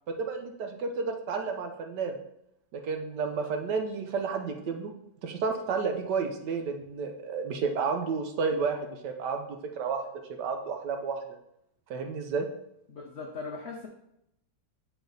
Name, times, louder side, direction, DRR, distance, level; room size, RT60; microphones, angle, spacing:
voice 1, 0.2-2.1 2.7-4.9 5.2-9.5 9.8-10.0 10.4-11.2 11.9-12.5, right 5 dB, 70° right, 5 dB, 1.3 m, -31 dB
voice 2, 12.9-13.9, left 4 dB, 80° left, 1 dB, 0.5 m, -39 dB
7.0 x 4.1 x 3.9 m, 0.79 s
omnidirectional pair, 2.0 m